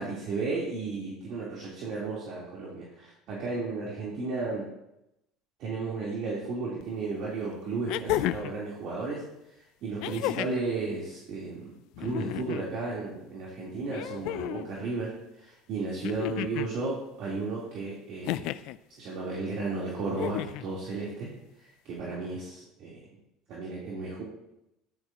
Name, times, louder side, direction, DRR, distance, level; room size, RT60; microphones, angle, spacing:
voice 1, 0.0-4.7 5.6-9.2 9.8-18.5 18.9-21.3 21.6-23.0 23.5-24.2, right 3 dB, 60° right, -6 dB, 3.8 m, -34 dB
sound 1, 6.8-6.9 7.9-8.6 10.0-10.7 11.9-12.7 13.9-14.7 16.0-16.7 18.2-18.8 20.1-20.7 22.0-22.1, left 14 dB, 70° left, 0.5 m, -32 dB
14.0 x 12.5 x 3.0 m, 0.87 s
supercardioid pair, 115°, 0 cm